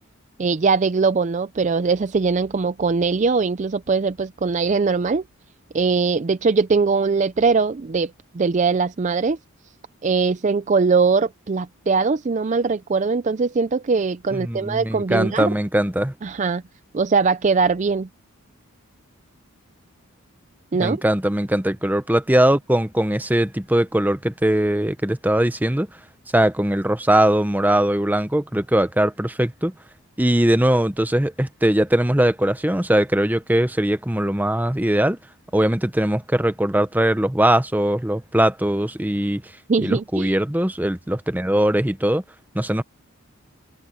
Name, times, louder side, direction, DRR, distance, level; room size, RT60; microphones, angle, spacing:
voice 1, 0.4-5.2 5.7-9.4 10.0-15.5 16.2-16.6 16.9-18.1 20.7-21.0 39.7-40.4, right 4 dB, 35° right, 0.4 m, -21 dB
voice 2, 14.3-16.1 20.7-25.9 26.3-29.7 30.2-35.2 35.5-39.5 39.8-42.2 42.5-42.8, right 1 dB, 10° right, 0.8 m, -20 dB
open air
head